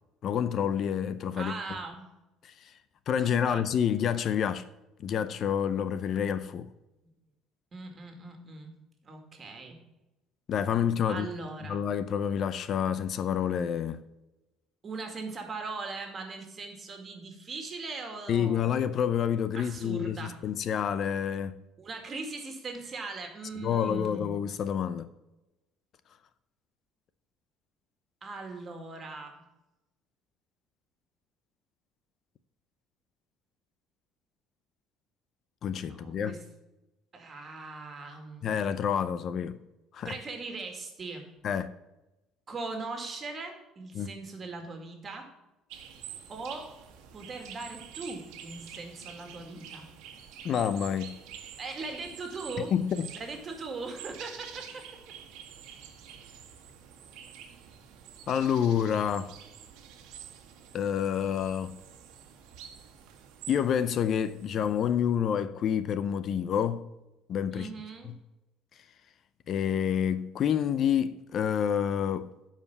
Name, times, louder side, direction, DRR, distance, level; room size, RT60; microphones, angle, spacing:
voice 1, 0.2-1.5 2.4-2.7 3.1-4.7 5.0-6.7 10.5-11.3 11.7-14.0 18.3-21.5 23.6-25.1 35.6-36.3 38.4-39.6 39.9-40.2 41.4-41.7 43.9-44.1 50.4-51.2 52.7-53.1 58.3-59.3 60.7-61.8 63.5-66.8 67.3-67.7 68.0-68.1 69.5-72.3, left 8 dB, 50° left, 0.5 m, -28 dB
voice 2, 1.4-2.1 3.2-3.6 7.7-8.7 9.0-9.8 11.1-11.8 14.8-18.7 19.5-20.4 21.8-24.4 28.2-29.4 35.9-36.4 37.1-38.6 40.0-41.3 42.5-45.3 46.3-46.7 47.1-49.9 51.6-52.7 53.2-54.9 67.5-68.1, right 3 dB, 30° right, 2.2 m, -40 dB
sound 1, 45.7-64.9, right 8 dB, 80° right, 1.4 m, -48 dB
10.5 x 5.0 x 6.9 m
cardioid pair, 115°, 0 cm